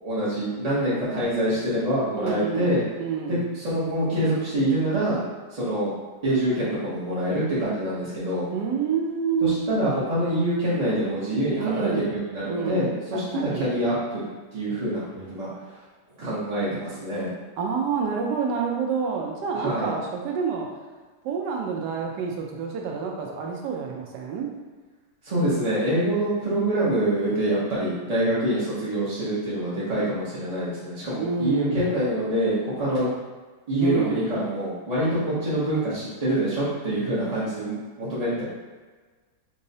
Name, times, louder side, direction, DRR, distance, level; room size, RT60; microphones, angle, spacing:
voice 1, 0.0-2.8 3.3-5.2 5.5-5.9 6.2-8.4 9.4-14.2 14.5-15.5 16.2-17.3 19.6-19.9 25.2-33.1 33.7-38.4, right 1 dB, 45° right, -10 dB, 0.5 m, -25 dB
voice 2, 2.2-3.4 8.5-9.8 11.6-12.1 12.5-13.6 17.6-20.7 21.2-24.5 31.2-31.9 33.8-34.3, right 6 dB, 85° right, 0 dB, 1.2 m, -28 dB
4.5 x 2.0 x 2.7 m, 1.4 s
omnidirectional pair, 1.8 m